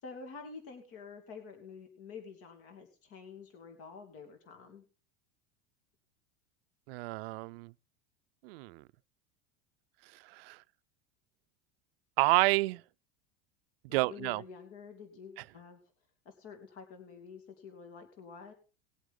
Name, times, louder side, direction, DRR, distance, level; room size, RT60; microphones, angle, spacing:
voice 1, 0.0-4.8 13.9-15.8 16.2-18.5, left 5 dB, 50° left, 2.7 m, -48 dB
voice 2, 6.9-7.7 8.4-8.8 10.3-10.6 12.2-12.8 13.9-14.4, right 22 dB, 75° right, 0.5 m, -29 dB
19.5 x 8.2 x 3.8 m
supercardioid pair, 130°, 30 cm